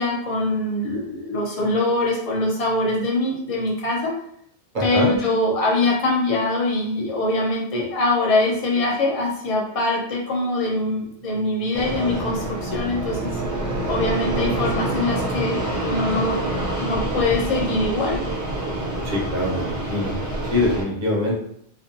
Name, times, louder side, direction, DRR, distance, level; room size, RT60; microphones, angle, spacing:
voice 1, 0.0-4.1 4.8-13.4 13.9-18.2, left 2 dB, 35° left, -4 dB, 0.6 m, -23 dB
voice 2, 4.7-5.1 19.0-20.1 20.5-21.3, left 1 dB, 50° right, -3 dB, 0.7 m, -23 dB
Bowed string instrument, 11.3-15.1, right 6 dB, 75° right, 0.9 m, -33 dB
Fixed-wing aircraft airplane, 11.7-20.8, right 1 dB, 30° right, 0.3 m, -27 dB
2.6 x 2.2 x 2.6 m, 0.71 s
omnidirectional pair, 1.2 m